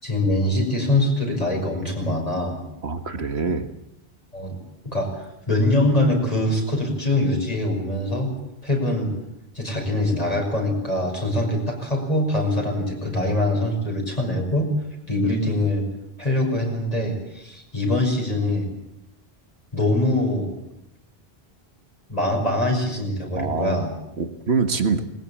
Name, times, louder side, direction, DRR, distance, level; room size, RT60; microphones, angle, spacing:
voice 1, 0.0-2.6 4.3-4.6 4.8-5.1 5.5-8.3 8.6-9.1 9.5-14.7 15.1-15.9 16.2-18.7 19.7-20.5 22.1-23.9, left 1 dB, 35° left, 1 dB, 5.8 m, -23 dB
voice 2, 2.8-3.7 23.3-23.9 24.2-25.0, right 4 dB, 80° right, 9 dB, 1.9 m, -24 dB
20.0 x 20.0 x 8.7 m, 0.84 s
omnidirectional pair, 1.1 m